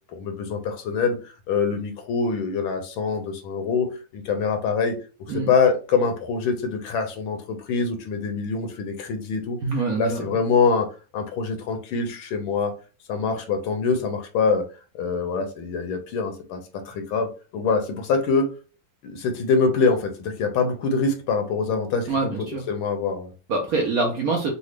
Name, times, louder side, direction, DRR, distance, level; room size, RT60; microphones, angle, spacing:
voice 1, 0.1-5.0 5.3-9.6 10.0-10.9 11.1-12.7 13.1-14.7 14.9-16.6 16.9-18.5 19.0-22.3 22.7-23.3, left 5 dB, 85° left, 6 dB, 1.5 m, -24 dB
voice 2, 9.6-10.2 22.1-22.6 23.5-24.5, right 3 dB, 70° right, 0 dB, 0.8 m, -24 dB
3.9 x 2.1 x 3.1 m, 0.35 s
omnidirectional pair, 2.2 m